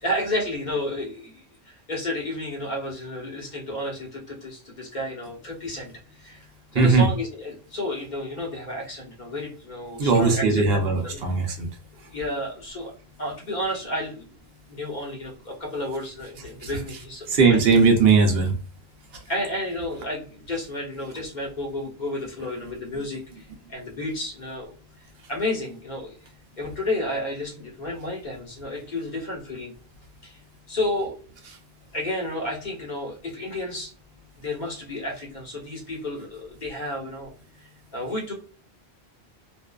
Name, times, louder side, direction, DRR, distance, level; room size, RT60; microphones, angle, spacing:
voice 1, 0.0-5.9 6.2-6.4 6.7-11.2 12.1-12.9 13.2-14.3 14.7-17.6 19.3-24.7 25.3-26.1 26.6-29.7 30.2-30.4 30.7-31.1 31.9-33.9 34.4-37.3 37.9-38.3, left 1 dB, 45° left, -1 dB, 1.0 m, -31 dB
voice 2, 6.7-7.1 10.0-11.7 17.3-18.6, right 4 dB, 70° right, 3 dB, 0.8 m, -18 dB
2.5 x 2.3 x 2.2 m, 0.39 s
omnidirectional pair, 1.1 m